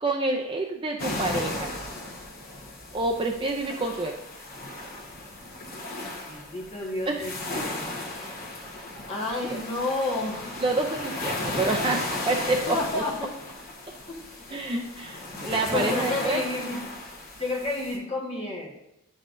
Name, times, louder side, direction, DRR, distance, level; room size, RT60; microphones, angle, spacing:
voice 1, 0.0-1.7 2.9-4.1 7.1-7.3 10.6-13.0 14.5-16.4, right 2 dB, 25° right, 2 dB, 0.4 m, -28 dB
sound 1, 1.0-18.0, left 2 dB, 40° left, 1.1 m, -35 dB
voice 2, 6.3-7.9 9.1-10.5 12.7-13.3 14.1-14.3 15.6-16.8 17.4-18.7, left 2 dB, 25° left, -3 dB, 1.5 m, -30 dB
9.7 x 5.4 x 2.6 m, 0.82 s
head